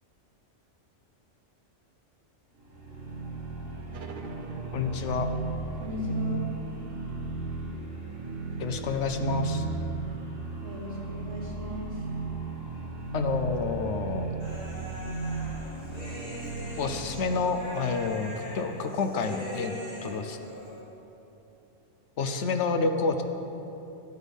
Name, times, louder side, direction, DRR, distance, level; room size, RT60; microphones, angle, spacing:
sound 1, 2.6-17.3, right 3 dB, 85° right, 2.2 m, -35 dB
sound 2, 3.9-9.2, right 3 dB, 50° right, 0.8 m, -46 dB
voice 1, 4.7-5.3 8.6-9.6 13.1-14.3 16.8-19.7 20.0-20.4 22.2-23.2, left 4 dB, 70° left, 6 dB, 1.0 m, -29 dB
voice 2, 5.8-6.4 10.6-12.0, left 1 dB, 65° right, -4 dB, 2.4 m, -37 dB
Human voice, 14.4-20.8, equal, 90° left, 3.4 m, -41 dB
14.0 x 8.1 x 5.4 m, 2.9 s
omnidirectional pair, 1.3 m